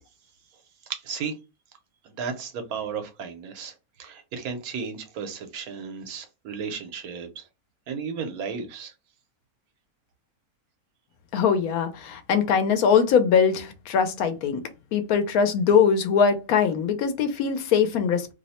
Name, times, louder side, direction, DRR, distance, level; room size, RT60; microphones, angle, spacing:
voice 1, 0.9-1.4 2.0-3.7 4.0-7.4 7.9-8.9, right 6 dB, 80° right, 1.2 m, -34 dB
voice 2, 11.3-14.6 14.9-18.3, left 6 dB, 80° left, 1.1 m, -21 dB
3.0 x 2.0 x 4.0 m
omnidirectional pair, 1.5 m